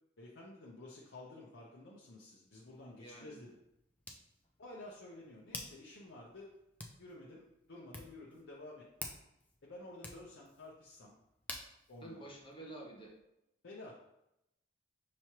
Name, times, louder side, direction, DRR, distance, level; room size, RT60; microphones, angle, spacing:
voice 1, 0.2-3.6 4.6-6.5 7.0-8.9 9.6-11.1 11.9-12.2 13.6-14.0, left 2 dB, 70° left, -4 dB, 0.7 m, -51 dB
Hands, 2.4-13.2, left 2 dB, 10° left, 0.4 m, -52 dB
voice 2, 3.0-3.3 12.0-13.1, right 2 dB, 25° left, -1 dB, 0.8 m, -49 dB
5.8 x 3.1 x 2.9 m, 0.86 s
head